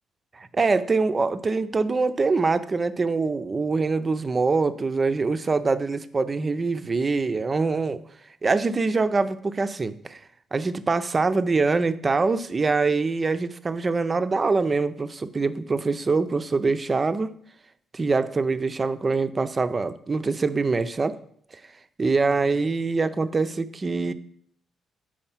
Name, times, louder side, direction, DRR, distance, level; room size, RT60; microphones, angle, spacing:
voice 1, 0.3-8.0 8.4-10.2 10.5-17.3 17.9-21.2 22.0-24.1, right 4 dB, 30° right, 12 dB, 0.4 m, -24 dB
4.8 x 4.4 x 5.7 m, 0.63 s
cardioid pair, 90°, 0 cm